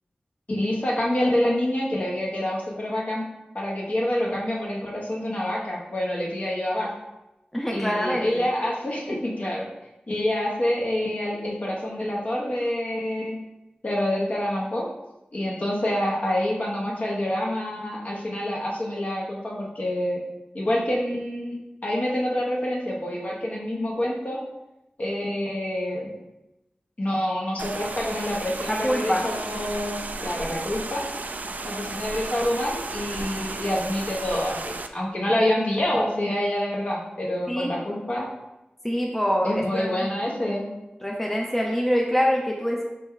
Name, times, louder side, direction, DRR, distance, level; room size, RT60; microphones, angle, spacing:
voice 1, 0.5-3.2 3.5-6.9 7.7-9.7 10.1-13.4 13.8-14.8 15.3-20.2 20.5-21.5 21.8-24.4 25.0-26.1 27.0-31.0 31.6-38.3 39.4-40.6, left 1 dB, 50° left, -3 dB, 1.2 m, -27 dB
voice 2, 7.5-8.5 28.7-29.2 37.5-37.7 38.8-40.0 41.0-42.8, equal, 5° left, -1 dB, 0.6 m, -25 dB
sound 1, 27.6-34.9, right 3 dB, 60° right, 0.3 m, -34 dB
4.4 x 2.9 x 3.7 m, 0.95 s
wide cardioid pair, 55°, 3 cm